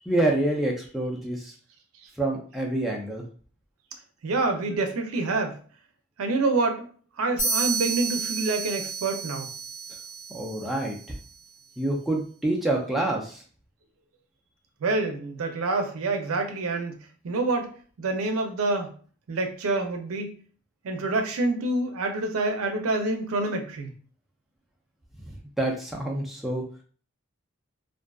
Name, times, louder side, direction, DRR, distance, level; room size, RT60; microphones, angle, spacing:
voice 1, 0.1-1.5 2.2-3.2 10.3-11.0 11.8-13.4 25.3-26.6, right 1 dB, ahead, -1 dB, 0.3 m, -27 dB
voice 2, 4.2-5.6 6.2-6.9 7.2-9.5 14.8-17.0 17.2-17.7 18.0-18.9 19.3-20.3 20.8-23.9, right 3 dB, 90° right, 5 dB, 0.5 m, -27 dB
sound 1, 7.4-11.1, right 4 dB, 35° left, 1.4 m, -31 dB
2.5 x 2.3 x 2.2 m, 0.42 s
head